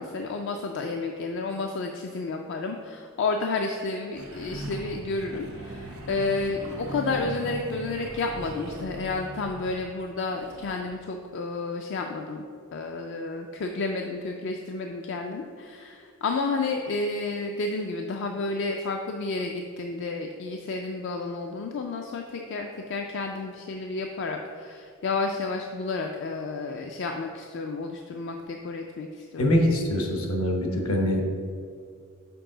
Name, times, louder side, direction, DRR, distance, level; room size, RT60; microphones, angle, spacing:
voice 1, 0.0-12.4 12.7-29.5, left 3 dB, 55° left, 3 dB, 0.4 m, -31 dB
sound 1, 4.1-9.9 10.2-10.8, right 1 dB, 90° right, 1.0 m, -39 dB
voice 2, 29.4-31.2, left 1 dB, 75° left, 1 dB, 1.1 m, -24 dB
6.9 x 4.7 x 3.8 m, 2.3 s
head